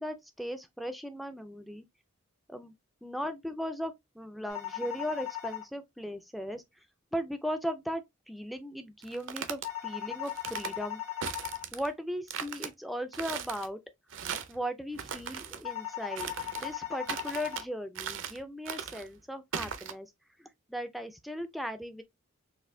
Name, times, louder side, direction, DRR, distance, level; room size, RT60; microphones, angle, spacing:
voice 1, 0.0-1.8 2.5-2.7 3.0-6.6 7.1-11.0 11.7-13.8 14.5-20.1 20.4-22.0, equal, ahead, 0.4 m, -37 dB
sound 1, 4.5-5.6 9.6-11.6 15.6-17.6, left 13 dB, 85° left, 1.3 m, -38 dB
sound 2, 9.0-9.7 10.2-10.7 11.2-11.9 12.3-12.7 13.1-13.7 14.1-14.6 14.9-15.6 16.2-16.7 17.1-17.6 17.9-18.4 18.6-19.1 19.5-19.9, right 7 dB, 65° right, 0.5 m, -38 dB
4.1 x 2.6 x 2.6 m
head